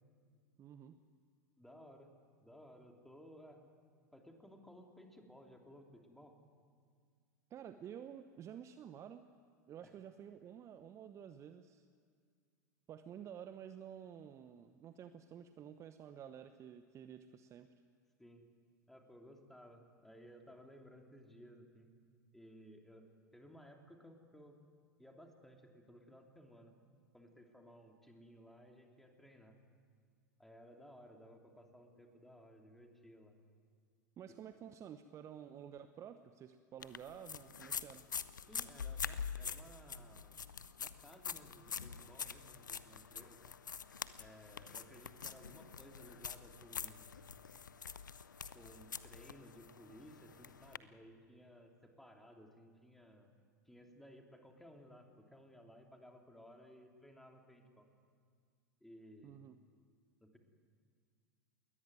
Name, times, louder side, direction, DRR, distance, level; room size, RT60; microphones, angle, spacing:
voice 1, 0.6-1.0 7.5-9.3 9.7-11.8 12.9-17.7 34.2-38.0 59.2-59.6, right 9 dB, 30° right, 10 dB, 0.9 m, -51 dB
voice 2, 1.6-2.1 2.4-3.6 4.1-6.4 9.8-9.9 18.2-18.5 18.9-21.9 22.3-24.5 25.0-26.8 27.1-29.6 30.4-33.4 38.5-40.4 40.8-43.5 44.2-47.1 48.5-53.4 53.6-57.9 58.8-59.4 60.2-60.4, equal, 5° left, 2 dB, 3.1 m, -58 dB
sound 1, 36.8-50.8, left 6 dB, 80° left, 0.7 m, -45 dB
21.5 x 18.5 x 9.3 m, 2.1 s
figure-of-eight pair, 90°, 10 cm